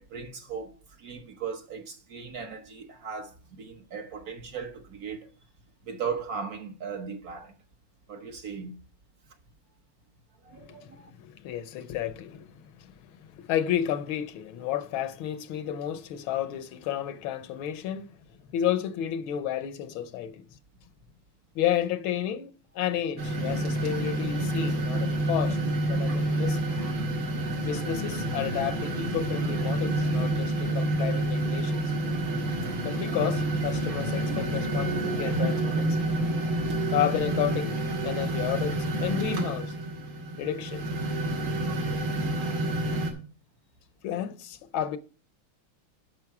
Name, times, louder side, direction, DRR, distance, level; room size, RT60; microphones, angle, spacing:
voice 1, 0.0-5.3 5.8-7.5 8.1-8.8 10.4-11.1, right 6 dB, 55° right, 1.3 m, -37 dB
voice 2, 10.6-18.1 18.5-20.5 21.5-25.6 25.9-26.6 27.6-31.9 32.8-36.0 36.9-37.8 38.0-39.7 40.4-40.9 44.0-45.0, left 10 dB, 80° left, 1.6 m, -31 dB
Taking of from Sacramento, 23.2-43.1, right 1 dB, 85° right, 2.9 m, -28 dB
10.5 x 6.4 x 4.7 m
omnidirectional pair, 2.2 m